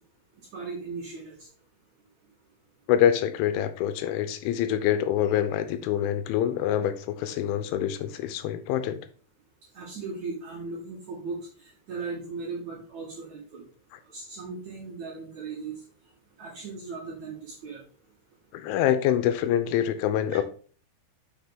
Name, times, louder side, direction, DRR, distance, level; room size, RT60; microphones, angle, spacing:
voice 1, 0.5-1.3 9.7-13.6 14.1-15.7 16.4-17.8, right 4 dB, 55° right, 2.3 m, -37 dB
voice 2, 2.9-9.0 18.5-20.4, left 10 dB, 85° left, 3.1 m, -25 dB
7.2 x 6.3 x 3.6 m
omnidirectional pair, 5.5 m